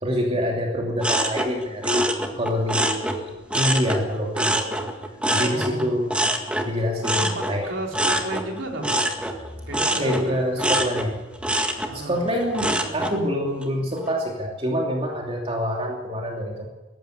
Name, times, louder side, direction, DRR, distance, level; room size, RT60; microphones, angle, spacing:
voice 1, 0.0-2.0 2.4-4.8 5.3-6.1 6.7-7.7 10.0-11.1 11.9-16.7, equal, 30° right, 0 dB, 2.8 m, -26 dB
sound 1, 1.0-4.0 4.3-13.2 13.6-14.1, right 1 dB, 5° right, 1.9 m, -26 dB
voice 2, 5.5-6.1 7.1-9.1 9.7-10.8 11.9-12.3, right 2 dB, 75° right, 0 dB, 4.0 m, -34 dB
18.5 x 15.0 x 9.5 m, 1.2 s
head